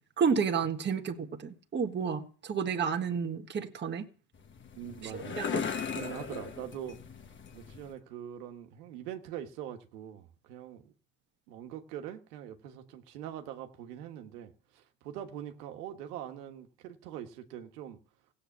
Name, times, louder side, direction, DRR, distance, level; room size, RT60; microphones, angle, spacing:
voice 1, 0.2-4.1 5.0-5.1 5.4-5.5, right 6 dB, 25° right, 1.6 m, -31 dB
sound 1, 4.3-7.9, left 6 dB, 25° left, 1.3 m, -38 dB
voice 2, 4.7-5.7 5.9-7.0 7.5-10.9 11.5-18.0, right 10 dB, 85° right, 1.6 m, -43 dB
16.0 x 8.3 x 7.2 m
supercardioid pair, 115°, 46 cm